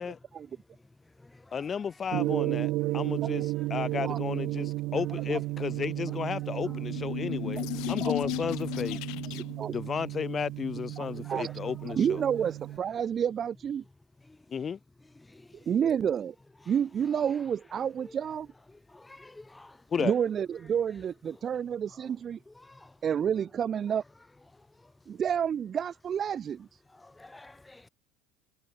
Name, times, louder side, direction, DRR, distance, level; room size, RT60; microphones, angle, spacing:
voice 1, 0.0-2.2 2.8-3.8 4.9-5.0 6.4-7.1 7.7-8.0 8.7-9.8 11.0-12.2 12.8-13.0 14.2-15.8 16.6-18.3 18.7-20.1 20.6-21.6 21.9-22.2 22.4-23.1 23.3-23.4 23.8-24.0 24.5-25.2 26.8-27.9, left 2 dB, 10° left, 4.7 m, -55 dB
voice 2, 1.5-7.6 7.9-9.1 9.7-12.2 14.5-14.8 19.9-20.1, left 6 dB, 30° left, 1.3 m, -33 dB
Gong, 2.1-12.8, right 19 dB, 65° right, 2.5 m, -33 dB
sound 1, 6.5-9.7, left 23 dB, 70° left, 0.5 m, -35 dB
voice 3, 8.0-8.3 9.3-9.7 11.0-11.5 11.8-13.8 15.7-16.3 16.7-18.5 20.0-22.4 23.0-24.0 25.1-26.7, right 8 dB, 35° right, 0.6 m, -30 dB
supercardioid pair, 115°, 0 cm